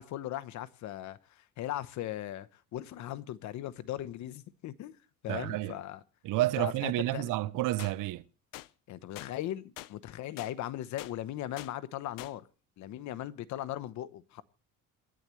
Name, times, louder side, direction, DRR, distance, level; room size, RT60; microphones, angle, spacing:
voice 1, 0.0-5.0 5.2-6.0 6.6-7.3 8.9-12.5 12.8-14.4, left 13 dB, 55° left, 1.0 m, -38 dB
voice 2, 5.3-5.8 6.2-8.2, right 16 dB, 65° right, 0.7 m, -30 dB
sound 1, 7.8-7.9 8.5-8.7 9.2-9.3 9.8-9.9 10.4-10.5 11.0-11.1 11.6-11.7 12.2-12.3, left 17 dB, 75° left, 0.6 m, -44 dB
27.0 x 10.5 x 3.2 m
cardioid pair, 155°, 34 cm